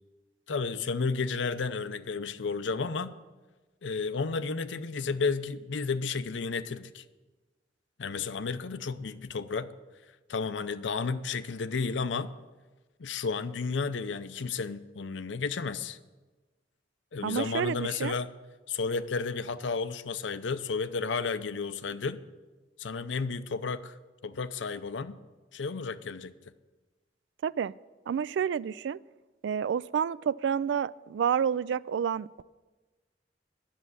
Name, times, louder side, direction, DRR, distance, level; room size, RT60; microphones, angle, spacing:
voice 1, 0.5-3.1 3.8-7.0 8.0-9.7 10.3-12.3 13.0-16.0 17.1-18.3 18.7-22.2 22.8-23.9 24.2-25.2 25.5-26.3, left 4 dB, 80° left, 13 dB, 0.6 m, -32 dB
voice 2, 17.2-18.2 27.4-27.7 28.1-29.0 29.4-32.4, right 7 dB, 75° right, 19 dB, 0.3 m, -29 dB
10.5 x 7.2 x 9.4 m, 1.2 s
head